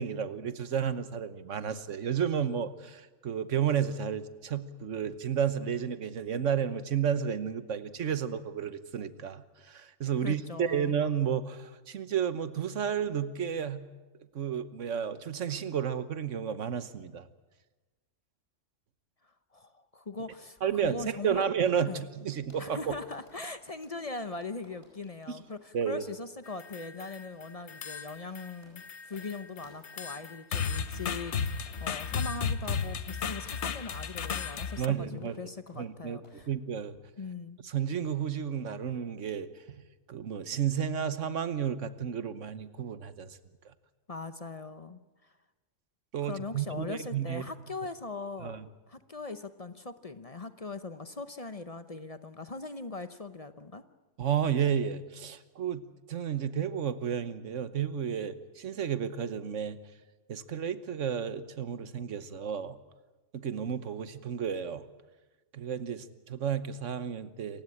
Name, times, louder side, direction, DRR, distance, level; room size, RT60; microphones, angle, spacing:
voice 1, 0.0-13.9 14.3-17.3 20.6-22.9 25.3-25.4 25.7-26.0 34.8-35.4 35.8-36.2 36.5-37.0 37.6-39.8 40.1-43.4 46.1-47.4 48.4-48.6 54.2-59.8 60.3-62.8 63.3-64.8 65.5-67.6, right 8 dB, 80° right, 13 dB, 1.4 m, -32 dB
voice 2, 10.2-10.9 19.5-21.4 21.9-22.0 22.6-36.5 37.2-37.6 44.1-45.3 46.2-48.6 48.9-53.8, left 3 dB, 35° left, 11 dB, 0.8 m, -40 dB
sound 1, 20.6-28.8 29.1-29.3 29.6-29.8 30.1-30.3 30.6-30.8 31.2-31.3 31.7-31.8 32.2-32.3 32.6-32.8 33.2-33.4 33.7-33.8 34.2-34.4 34.6-34.8 35.2-35.4 35.7-35.8 36.2-36.4, left 1 dB, 55° left, 5.5 m, -60 dB
sound 2, 26.5-27.3 27.7-28.5 28.8-34.9, left 6 dB, 70° left, 1.2 m, -34 dB
27.5 x 16.0 x 8.7 m, 1.2 s
omnidirectional pair, 1.2 m